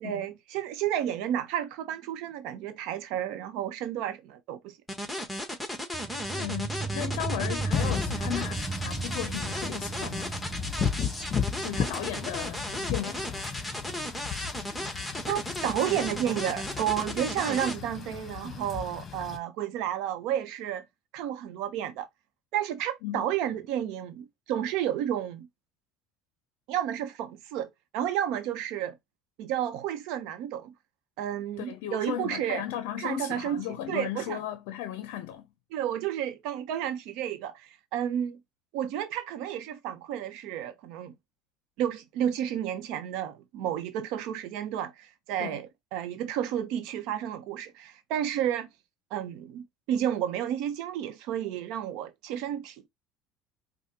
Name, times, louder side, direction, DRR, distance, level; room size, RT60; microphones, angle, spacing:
voice 1, 0.0-4.8 15.3-20.8 21.1-22.1 22.5-25.5 26.7-29.0 29.4-30.7 31.2-32.6 33.0-33.6 33.9-34.4 35.7-38.4 38.7-41.1 41.8-48.7 49.1-52.9, right 10 dB, 70° right, 0.7 m, -31 dB
sound 1, 4.9-17.7, left 1 dB, 5° left, 1.3 m, -35 dB
sound 2, 5.9-17.0, right 4 dB, 15° right, 0.6 m, -38 dB
voice 2, 6.3-10.4 11.6-13.3 23.0-23.3 31.6-35.5 45.4-45.6, left 12 dB, 80° left, 0.5 m, -36 dB
Wind / Rain, 7.7-19.4, left 7 dB, 35° left, 1.0 m, -35 dB
4.9 x 2.1 x 2.8 m
supercardioid pair, 90°, 0 cm